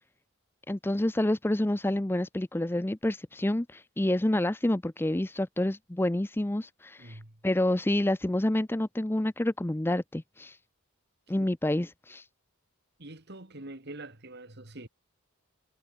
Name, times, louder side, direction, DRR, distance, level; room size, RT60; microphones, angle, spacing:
voice 1, 0.7-7.2 7.4-10.6 11.3-12.2, left 1 dB, 10° left, 0.5 m, -28 dB
voice 2, 7.0-7.4 13.0-14.9, right 2 dB, 50° right, 2.6 m, -44 dB
head